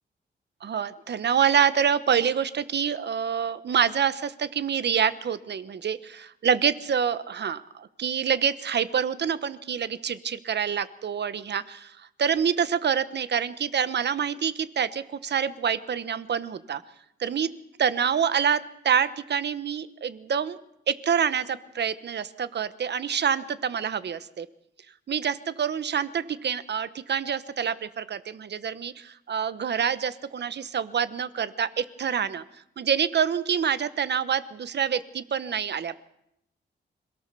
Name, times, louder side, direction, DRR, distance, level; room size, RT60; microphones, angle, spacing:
voice 1, 0.6-16.8 17.2-17.5 17.8-20.6 20.9-24.5 25.1-32.4 32.8-36.0, right 7 dB, 65° right, 14 dB, 1.1 m, -26 dB
26.5 x 17.0 x 6.9 m, 0.78 s
wide cardioid pair, 140°, 19 cm